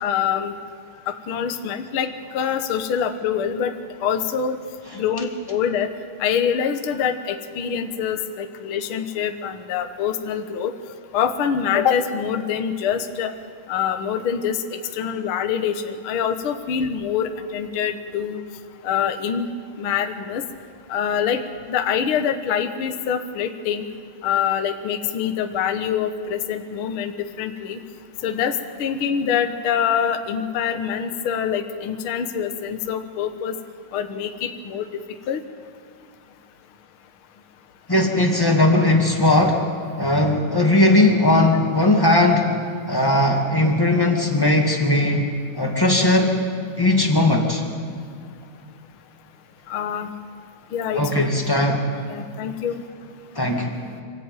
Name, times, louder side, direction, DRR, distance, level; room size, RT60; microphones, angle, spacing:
voice 1, 0.0-0.6 1.1-3.7 4.0-4.6 4.9-5.9 6.2-10.7 11.1-13.3 13.7-18.4 18.8-19.5 19.8-20.4 20.9-21.4 21.7-23.9 24.2-27.1 27.4-27.8 28.2-33.6 33.9-34.9 35.3-35.4 49.7-50.1 50.7-51.2 52.1-52.8, left 8 dB, 85° left, 6 dB, 1.1 m, -25 dB
voice 2, 37.9-39.6 40.0-42.6 42.9-45.3 45.5-46.4 46.8-47.6 50.9-51.8 53.3-53.7, left 1 dB, 10° left, 0 dB, 1.0 m, -18 dB
25.5 x 15.0 x 9.1 m, 2.2 s
omnidirectional pair, 4.3 m